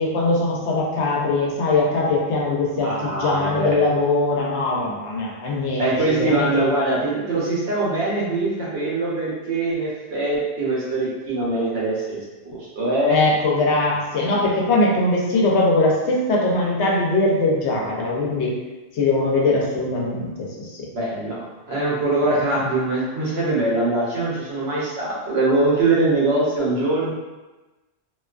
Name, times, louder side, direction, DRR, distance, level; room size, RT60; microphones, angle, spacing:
voice 1, 0.0-6.5 13.1-18.5 18.9-20.9 22.2-22.3, left 2 dB, 90° left, -3 dB, 0.9 m, -21 dB
voice 2, 2.8-3.8 5.8-13.2 20.9-21.4 21.7-27.1, right 2 dB, 80° right, -5 dB, 1.0 m, -22 dB
2.6 x 2.2 x 2.3 m, 1.1 s
omnidirectional pair, 1.1 m